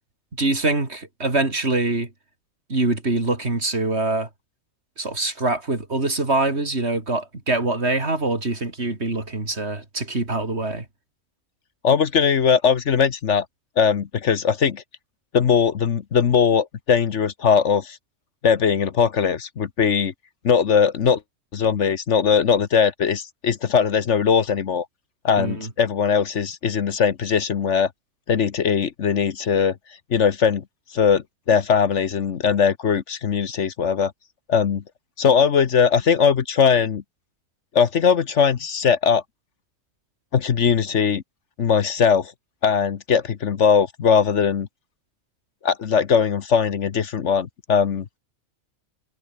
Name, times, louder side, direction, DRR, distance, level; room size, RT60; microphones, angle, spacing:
voice 1, 0.4-2.1 2.7-4.3 5.0-10.9 25.4-25.7, right 2 dB, 50° right, 4.0 m, -24 dB
voice 2, 11.8-13.4 13.8-14.8 15.3-18.0 18.4-20.1 20.4-21.2 21.5-24.9 25.2-27.9 28.3-29.7 30.1-30.6 30.9-34.1 34.5-34.8 35.2-37.0 37.7-39.2 40.3-41.2 41.6-42.3 42.6-44.7 45.6-48.0, left 6 dB, 60° left, 1.3 m, -20 dB
omnidirectional pair, 1.4 m